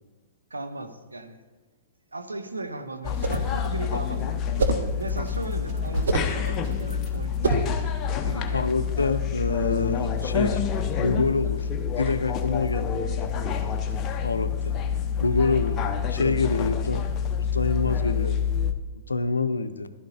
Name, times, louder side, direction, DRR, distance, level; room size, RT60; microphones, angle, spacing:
voice 1, 0.5-1.4 2.1-4.7 5.0-7.9 8.2-8.9, right 2 dB, 90° right, 8 dB, 1.0 m, -37 dB
sound 1, 3.0-18.7, left 7 dB, 25° left, 0.9 m, -27 dB
sound 2, 3.1-3.5 4.6-4.9 5.9-6.4 7.4-7.8, right 3 dB, 70° right, 1.1 m, -25 dB
Drum kit, 4.9-7.3, right 4 dB, 40° right, 3.2 m, -41 dB
voice 2, 8.5-10.6 11.0-11.7 12.0-13.2 14.2-14.7 15.2-15.8 16.1-17.0 17.4-18.4 19.1-19.9, left 3 dB, 85° left, 11 dB, 0.6 m, -26 dB
15.0 x 12.5 x 2.8 m, 1.3 s
figure-of-eight pair, 110°, 0 cm